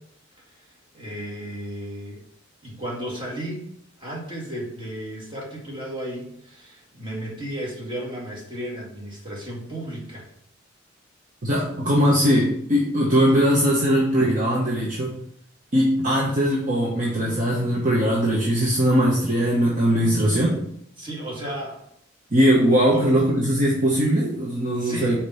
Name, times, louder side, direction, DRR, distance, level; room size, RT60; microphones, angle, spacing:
voice 1, 0.9-2.2 2.6-3.7 4.0-10.3 21.0-21.8 22.9-23.1 24.8-25.2, right 1 dB, 25° right, -4 dB, 2.1 m, -34 dB
voice 2, 11.4-15.2 15.7-20.6 22.3-25.2, equal, 40° right, -4 dB, 1.1 m, -20 dB
5.1 x 4.4 x 5.6 m, 0.71 s
head